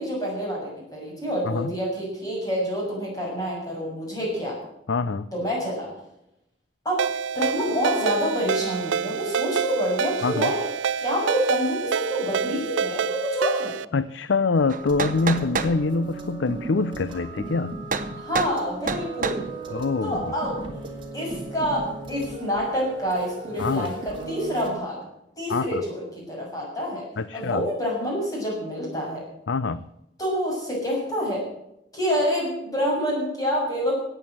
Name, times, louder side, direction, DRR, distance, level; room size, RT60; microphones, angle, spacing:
voice 1, 0.0-4.6 5.3-5.9 6.9-7.0 7.4-10.6 11.0-13.8 18.2-20.6 21.1-25.0 25.4-27.1 27.3-29.2 30.2-31.4 31.9-33.9, equal, 20° left, -3 dB, 6.8 m, -27 dB
voice 2, 4.9-5.3 10.2-10.5 13.9-17.8 19.7-20.2 23.6-23.9 25.5-25.8 27.2-27.6 29.5-29.8, left 4 dB, 75° left, 14 dB, 0.5 m, -25 dB
Ringtone, 7.0-13.9, right 6 dB, 80° right, 0.4 m, -27 dB
sound 1, 14.6-24.7, right 3 dB, 25° right, 2.5 m, -36 dB
sound 2, 14.7-15.8 17.9-18.1 18.4-18.6 18.9-19.4, right 4 dB, 45° right, 0.9 m, -27 dB
14.5 x 9.2 x 7.6 m, 0.82 s
head